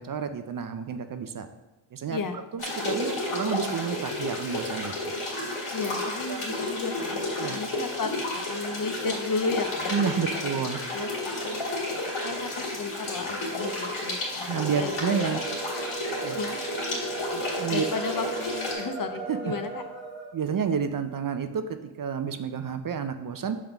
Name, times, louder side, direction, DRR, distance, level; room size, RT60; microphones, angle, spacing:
voice 1, 0.0-1.5 1.9-2.2 2.5-5.1 6.3-6.5 7.4-7.6 9.9-10.8 14.5-15.5 16.2-16.4 17.3-17.8 19.3-19.4 20.3-23.6, right 7 dB, 45° right, 9 dB, 0.5 m, -30 dB
sound 1, 2.6-18.7, left 2 dB, 85° left, 2.0 m, -32 dB
voice 2, 5.7-7.2 7.5-8.1 8.5-10.6 10.9-11.1 11.4-11.6 12.2-15.4 16.3-16.6 17.7-19.8, left 4 dB, 45° left, 8 dB, 0.7 m, -33 dB
sound 2, 15.0-20.3, right 5 dB, ahead, 1.9 m, -37 dB
5.4 x 3.7 x 5.8 m, 1.1 s
cardioid pair, 80°, 49 cm